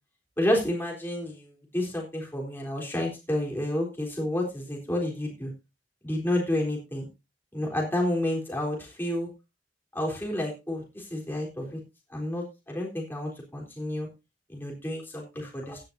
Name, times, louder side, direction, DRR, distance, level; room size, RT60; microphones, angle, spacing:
voice 1, 0.4-5.5 6.0-7.1 7.5-9.3 9.9-11.8 12.1-14.1 14.5-15.8, left 1 dB, 10° left, -1 dB, 3.7 m, -30 dB
16.5 x 10.5 x 2.7 m, 0.26 s
head